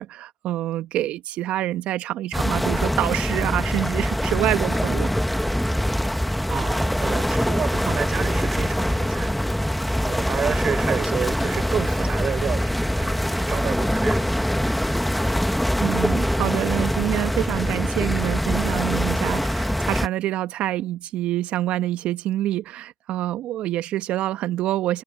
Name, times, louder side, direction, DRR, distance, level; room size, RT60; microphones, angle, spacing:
voice 1, 0.0-5.1 15.8-25.0, right 14 dB, 70° right, 1.6 m, -26 dB
sound 1, 2.3-20.1, equal, 5° left, 2.1 m, -23 dB
voice 2, 6.5-9.3 10.0-14.3, right 8 dB, 50° right, 5.3 m, -30 dB
open air
hypercardioid pair, 55°, 2 cm